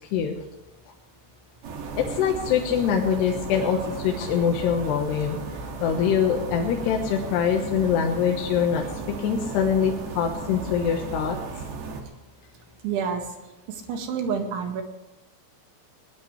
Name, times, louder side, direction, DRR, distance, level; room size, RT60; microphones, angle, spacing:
sound 1, 1.6-12.0, right 4 dB, 70° right, 4.3 m, -35 dB
voice 1, 2.0-5.4 5.8-8.8 9.2-11.4, left 8 dB, 70° left, 1 dB, 3.2 m, -24 dB
voice 2, 12.8-13.3 13.7-14.8, right 6 dB, 85° right, 4 dB, 4.4 m, -28 dB
20.5 x 18.5 x 3.3 m, 1.0 s
omnidirectional pair, 5.2 m